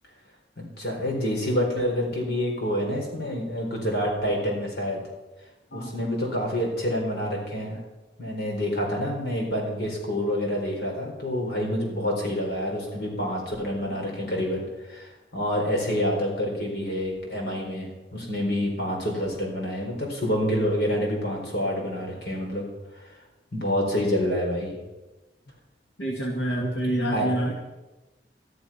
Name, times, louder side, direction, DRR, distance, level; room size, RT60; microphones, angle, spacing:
voice 1, 0.6-5.0 5.7-7.8 8.2-22.6 23.0-23.1 23.5-24.8 27.1-27.3, equal, 60° left, -1 dB, 4.5 m, -27 dB
voice 2, 26.0-27.5, right 1 dB, 85° left, -1 dB, 2.0 m, -27 dB
13.0 x 11.5 x 5.8 m, 1.1 s
head